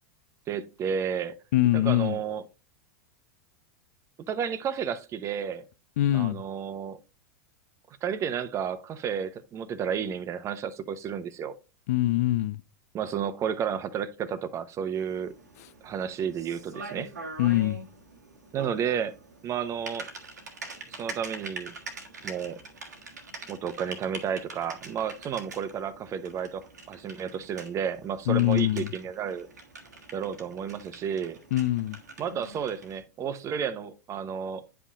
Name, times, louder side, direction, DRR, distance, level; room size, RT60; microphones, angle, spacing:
voice 1, 0.5-1.3 1.7-2.4 4.3-5.6 6.1-7.0 8.0-11.6 12.9-15.3 15.8-17.1 18.5-19.1 19.4-20.1 20.9-21.7 22.2-22.6 23.5-29.5 30.1-31.4 32.2-34.6, right 7 dB, 35° right, 0.8 m, -32 dB
voice 2, 1.5-2.2 6.0-6.4 11.9-12.6 17.4-17.8 28.3-28.9 31.5-32.0, left 15 dB, 65° left, 0.4 m, -23 dB
Typing, 14.9-33.0, right 3 dB, 90° right, 1.4 m, -44 dB
9.7 x 5.5 x 2.5 m
hypercardioid pair, 95°, 9 cm